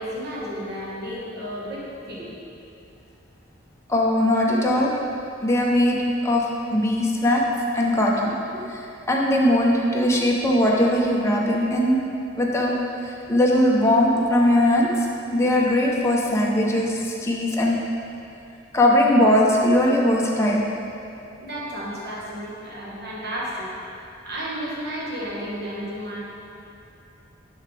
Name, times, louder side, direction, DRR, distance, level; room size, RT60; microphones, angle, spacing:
voice 1, 0.0-2.3 21.4-23.7 24.2-26.2, equal, 55° right, -5 dB, 1.4 m, -32 dB
voice 2, 3.9-4.9 5.4-7.5 7.7-8.8 9.1-12.0 12.4-12.7 13.0-15.1 15.3-17.8 18.7-20.6, left 1 dB, 15° left, -3 dB, 0.7 m, -20 dB
7.2 x 5.7 x 3.3 m, 2.6 s
head